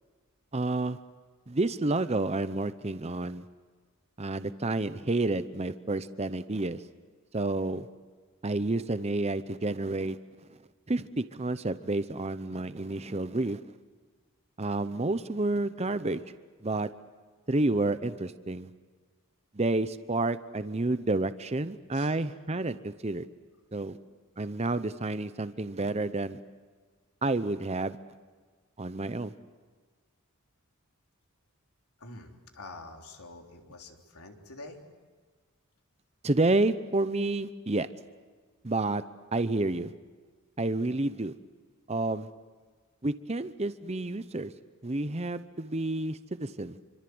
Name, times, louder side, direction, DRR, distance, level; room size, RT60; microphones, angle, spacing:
voice 1, 0.5-1.0 1.5-3.4 4.2-6.8 7.3-7.9 8.4-10.2 10.9-13.6 14.6-16.2 16.6-16.9 17.5-18.7 19.5-23.2 23.7-24.0 24.4-26.4 27.2-28.0 28.8-29.3 36.2-37.9 38.6-39.0 39.3-39.9 40.6-41.3 41.9-42.3 43.0-44.5 44.8-46.8, right 2 dB, 30° right, 12 dB, 0.8 m, -29 dB
voice 2, 32.0-34.8, left 2 dB, 85° left, 2 dB, 3.6 m, -47 dB
27.0 x 25.5 x 7.9 m, 1.4 s
head